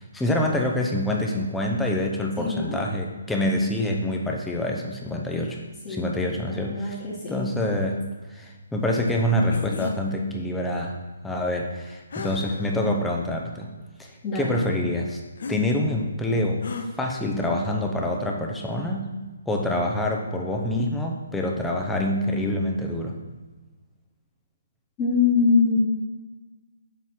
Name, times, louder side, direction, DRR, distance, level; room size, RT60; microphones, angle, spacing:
voice 1, 0.1-5.6 5.9-7.0 7.3-8.0 8.3-11.0 11.2-13.7 14.0-15.2 15.5-16.6 17.0-19.1 19.5-23.2, left 1 dB, 5° left, 0 dB, 0.8 m, -26 dB
voice 2, 2.4-2.8 5.8-6.1 6.4-7.4 14.2-14.6 25.0-25.8, left 5 dB, 25° left, -8 dB, 1.7 m, -23 dB
sound 1, 9.5-10.0 12.1-12.8 13.4-13.5 15.4-15.6 16.6-16.9, left 4 dB, 60° left, 0.7 m, -33 dB
7.1 x 4.2 x 5.9 m, 1.2 s
figure-of-eight pair, 140°, 0 cm